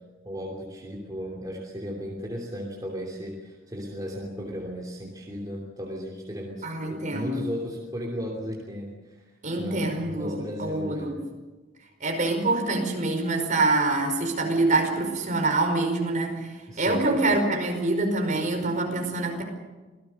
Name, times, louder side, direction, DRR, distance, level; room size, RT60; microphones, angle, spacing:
voice 1, 0.2-9.3 9.6-11.1 16.7-17.3, equal, 20° right, -2 dB, 2.9 m, -35 dB
voice 2, 6.6-7.5 9.4-11.2 12.0-19.4, right 2 dB, 40° right, 3 dB, 5.1 m, -25 dB
26.5 x 18.0 x 6.8 m, 1.2 s
head